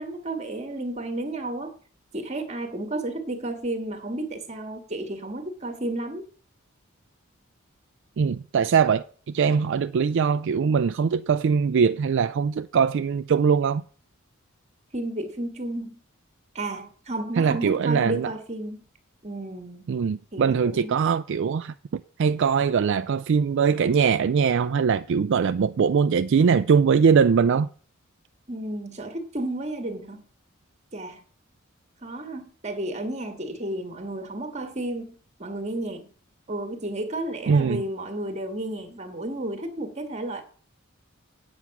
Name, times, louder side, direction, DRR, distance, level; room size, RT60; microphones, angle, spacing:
voice 1, 0.0-1.7 2.1-6.2 14.9-16.0 16.5-18.8 19.2-19.9 20.3-21.1 28.5-30.2 30.9-31.2 32.0-36.0 36.5-40.4, right 1 dB, 35° right, 1.7 m, -32 dB
voice 2, 8.2-13.8 17.4-18.3 19.9-27.7 37.5-37.8, right 6 dB, 60° right, 0.4 m, -22 dB
8.4 x 7.7 x 5.9 m
head